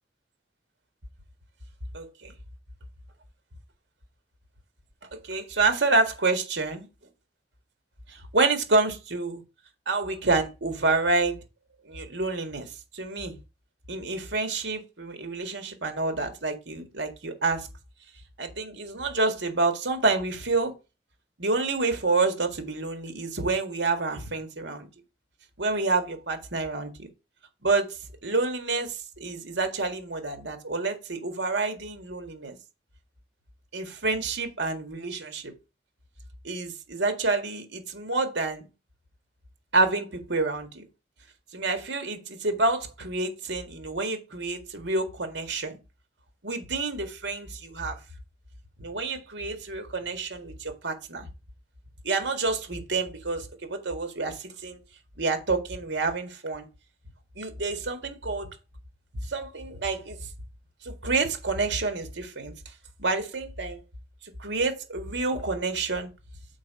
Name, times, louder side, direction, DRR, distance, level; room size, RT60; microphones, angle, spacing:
voice 1, 1.9-2.3 5.2-6.9 8.1-9.4 9.9-11.4 11.9-13.4 13.9-17.7 18.4-20.7 21.4-24.9 25.6-27.1 27.6-27.9 28.2-32.6 33.7-35.5 36.4-38.6 39.7-40.8 41.5-45.8 46.4-48.0 48.8-51.3 52.0-54.8 55.2-56.7 57.4-58.5 59.2-60.2 60.8-62.5 63.0-63.8 64.2-66.1, right 3 dB, 85° right, 1.8 m, -28 dB
6.5 x 4.5 x 5.1 m
head